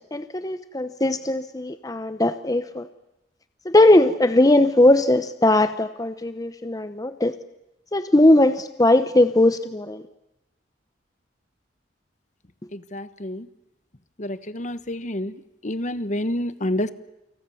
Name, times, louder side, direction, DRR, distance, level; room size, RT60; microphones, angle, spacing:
voice 1, 0.1-2.9 3.7-7.3 7.9-10.0, left 1 dB, 20° left, 10 dB, 0.9 m, -19 dB
voice 2, 12.9-13.4 14.2-15.3 15.6-16.9, left 1 dB, 45° left, 13 dB, 1.2 m, -28 dB
29.0 x 26.5 x 7.2 m, 0.93 s
head